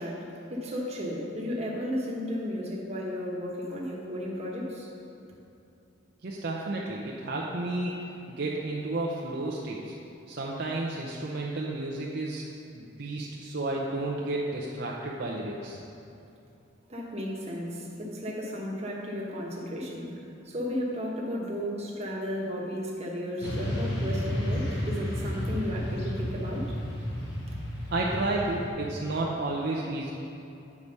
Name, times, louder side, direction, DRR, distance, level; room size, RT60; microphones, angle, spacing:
voice 1, 0.0-4.9 16.9-20.2 20.4-26.7 27.5-27.6, equal, 35° right, -3 dB, 1.2 m, -34 dB
voice 2, 6.2-8.0 8.3-9.9 10.3-12.4 12.7-15.8 27.9-30.1, right 2 dB, 55° right, -3 dB, 0.6 m, -31 dB
Motorcycle / Traffic noise roadway noise, 23.4-28.7, equal, 60° left, 1.4 m, -32 dB
8.6 x 4.8 x 5.3 m, 2.8 s
head